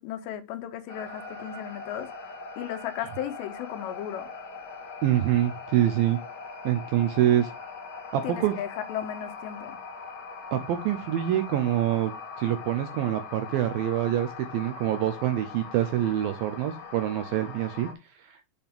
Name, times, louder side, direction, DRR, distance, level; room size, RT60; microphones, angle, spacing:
voice 1, 0.0-2.1 2.6-4.3 8.2-9.8, left 10 dB, 90° left, 3.1 m, -35 dB
sound 1, 0.9-17.9, left 5 dB, 55° left, 2.9 m, -41 dB
voice 2, 5.0-6.2 6.6-7.5 8.1-8.5 10.5-12.1 12.4-17.9 18.2-18.4, right 12 dB, 85° right, 2.1 m, -25 dB
8.1 x 4.3 x 3.5 m
omnidirectional pair, 4.9 m